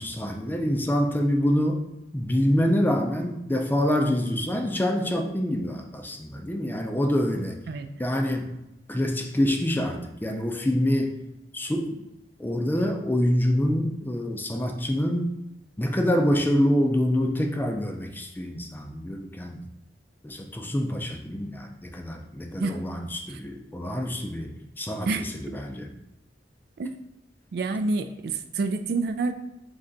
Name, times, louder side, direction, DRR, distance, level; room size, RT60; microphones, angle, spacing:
voice 1, 0.0-1.8 2.1-7.6 8.0-8.5 8.9-11.1 11.5-12.0 12.4-15.3 15.8-19.6 20.2-25.9, equal, 10° left, 3 dB, 0.4 m, -26 dB
voice 2, 27.5-29.3, right 3 dB, 60° right, 9 dB, 0.3 m, -28 dB
4.0 x 3.3 x 3.7 m, 0.87 s
head